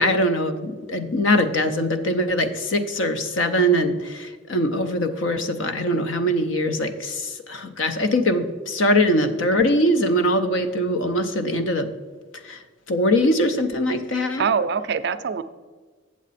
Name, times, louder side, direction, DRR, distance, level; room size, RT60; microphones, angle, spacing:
voice 1, 0.0-11.9 12.4-12.6 12.9-14.5, equal, 80° left, 8 dB, 0.7 m, -22 dB
voice 2, 14.4-15.4, right 6 dB, 55° right, 11 dB, 0.4 m, -24 dB
8.5 x 7.3 x 4.1 m, 1.4 s
head